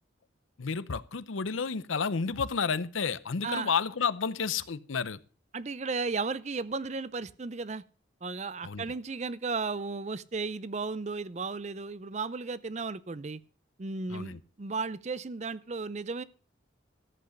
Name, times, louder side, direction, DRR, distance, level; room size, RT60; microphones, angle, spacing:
voice 1, 0.6-5.2 8.6-8.9 14.1-14.4, left 5 dB, 90° left, 0.7 m, -31 dB
voice 2, 5.5-7.8 8.2-13.4 13.8-16.2, right 4 dB, 35° right, 0.5 m, -34 dB
13.5 x 8.1 x 6.5 m
head